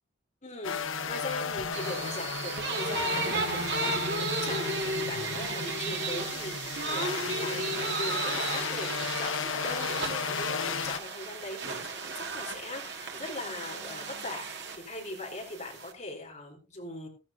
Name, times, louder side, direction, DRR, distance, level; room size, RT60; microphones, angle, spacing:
voice 1, 0.4-17.1, left 2 dB, 35° left, 0 dB, 4.0 m, -40 dB
sound 1, 0.6-11.0, left 5 dB, 85° left, 1.0 m, -34 dB
sound 2, 1.7-15.9, right 3 dB, 60° right, 2.2 m, -34 dB
14.5 x 14.0 x 2.8 m, 0.31 s
head